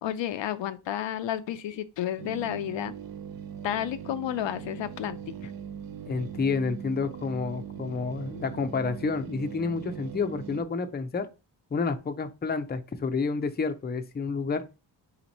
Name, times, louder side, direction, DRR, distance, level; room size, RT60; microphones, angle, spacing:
voice 1, 0.0-2.9 3.6-5.5, left 11 dB, 75° left, 0.5 m, -31 dB
sound 1, 2.2-10.6, right 8 dB, 50° right, 0.5 m, -40 dB
voice 2, 6.1-11.3 11.7-14.6, left 4 dB, 20° left, 0.5 m, -29 dB
4.2 x 3.0 x 4.0 m
cardioid pair, 90°, 45 cm